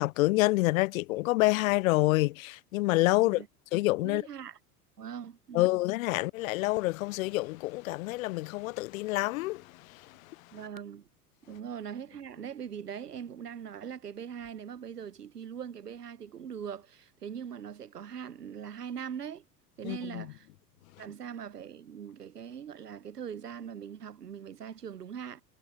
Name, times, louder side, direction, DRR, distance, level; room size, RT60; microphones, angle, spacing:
voice 1, 0.0-3.4 3.7-4.2 5.5-10.5 19.8-20.3, left 20 dB, 60° left, 0.7 m, -27 dB
voice 2, 4.0-4.6 5.0-5.8 10.5-11.1 11.5-19.5 19.8-20.5 21.0-25.4, right 8 dB, 90° right, 1.0 m, -41 dB
figure-of-eight pair, 85°, 46 cm